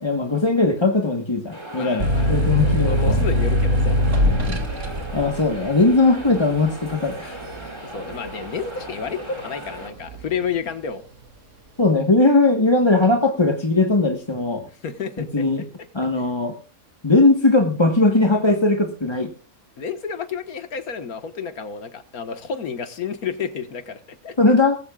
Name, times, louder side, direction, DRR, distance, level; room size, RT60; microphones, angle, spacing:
voice 1, 0.0-3.2 4.5-4.6 5.1-7.4 11.8-14.7 15.3-15.6 15.9-16.6 17.0-19.3 24.4-24.8, left 2 dB, 20° left, 4 dB, 1.3 m, -19 dB
sound 1, 1.5-9.9, right 1 dB, 20° right, 3.3 m, -37 dB
voice 2, 1.7-4.2 7.8-11.0 14.7-15.5 16.2-16.3 19.8-24.4, left 6 dB, 90° left, 9 dB, 1.9 m, -31 dB
sound 2, 2.0-9.3 9.7-10.4, equal, 55° right, 2.8 m, -22 dB
19.5 x 16.0 x 2.4 m, 0.34 s
omnidirectional pair, 1.5 m